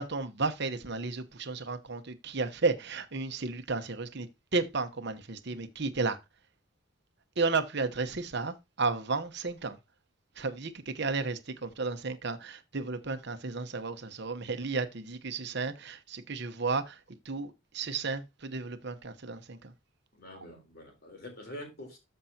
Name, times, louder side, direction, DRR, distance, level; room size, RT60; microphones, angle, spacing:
voice 1, 0.0-4.3 4.5-6.2 7.4-9.8 10.4-17.0 17.2-19.7, right 4 dB, 55° right, 1.0 m, -33 dB
voice 2, 20.1-22.0, left 1 dB, 50° left, 3.8 m, -45 dB
13.5 x 5.6 x 2.8 m
head